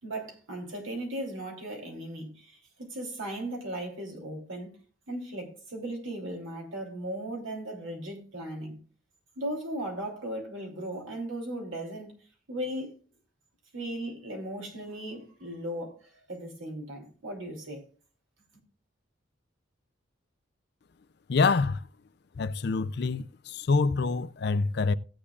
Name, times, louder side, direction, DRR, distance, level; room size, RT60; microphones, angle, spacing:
voice 1, 0.0-4.8 5.1-8.8 9.4-12.1 12.5-12.9 13.7-16.0 16.3-17.8, right 1 dB, 85° right, 3.1 m, -37 dB
voice 2, 21.3-21.8 22.4-24.9, left 4 dB, 55° left, 0.4 m, -26 dB
17.0 x 8.4 x 2.4 m
head